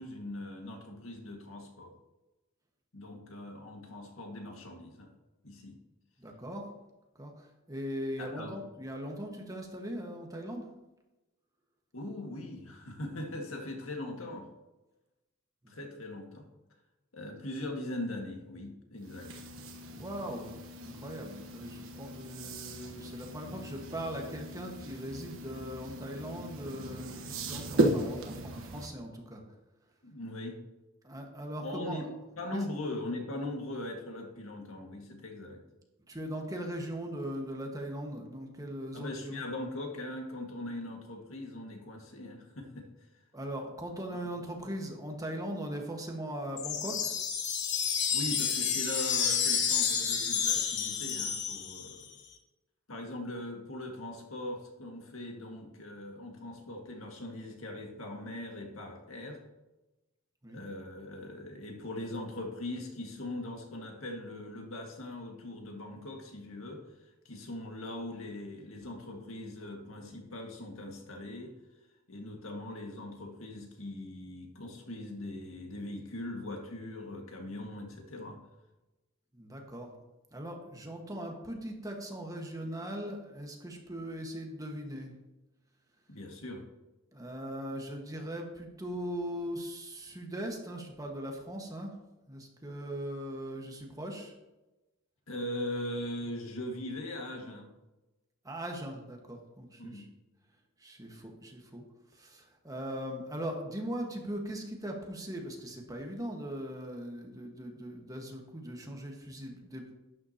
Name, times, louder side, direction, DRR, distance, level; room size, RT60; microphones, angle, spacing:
voice 1, 0.0-1.9 2.9-5.1 5.4-5.8 8.2-8.6 11.9-14.5 15.7-16.5 17.1-19.3 30.0-30.6 31.6-35.6 38.9-42.9 48.1-52.1 52.9-59.4 60.5-66.8 67.3-71.5 72.1-78.4 86.1-86.7 95.3-97.7 99.8-100.1, left 1 dB, 85° left, 2 dB, 2.0 m, -40 dB
voice 2, 6.2-6.7 7.2-10.7 15.6-15.7 19.7-29.4 31.0-32.1 32.5-32.6 36.1-39.4 43.3-47.1 60.4-60.6 79.3-79.9 80.3-85.1 87.1-91.9 92.3-94.3 98.4-100.0 100.8-101.8 102.1-109.9, equal, 20° right, 1 dB, 1.5 m, -40 dB
sound 1, 19.0-28.9, right 1 dB, 70° right, 1.3 m, -36 dB
sound 2, 46.6-52.0, left 7 dB, 60° left, 1.3 m, -30 dB
11.5 x 9.7 x 2.9 m, 1.0 s
head